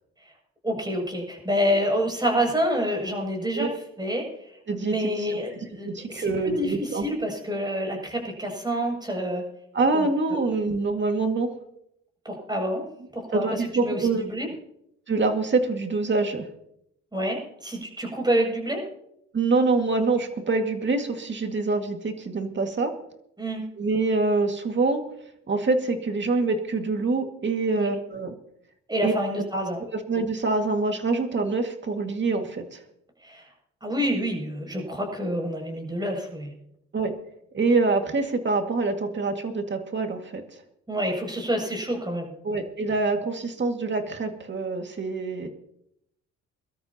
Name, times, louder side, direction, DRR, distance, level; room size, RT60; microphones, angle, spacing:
voice 1, 0.6-3.7 4.0-9.4 9.9-10.1 12.2-12.8 13.1-14.5 17.1-18.8 23.4-23.6 27.7-27.9 28.9-29.8 33.2-33.5 33.8-36.5 40.9-42.4, equal, 15° right, 0 dB, 7.5 m, -28 dB
voice 2, 4.7-5.1 5.9-7.1 9.7-11.5 13.3-14.3 15.1-16.5 19.3-22.9 23.8-25.0 25.5-28.3 29.0-29.1 29.9-32.8 36.9-37.1 37.5-40.4 42.4-45.5, right 3 dB, 40° right, 5 dB, 2.2 m, -25 dB
24.0 x 13.0 x 3.0 m, 0.76 s
cardioid pair, 90°, 30 cm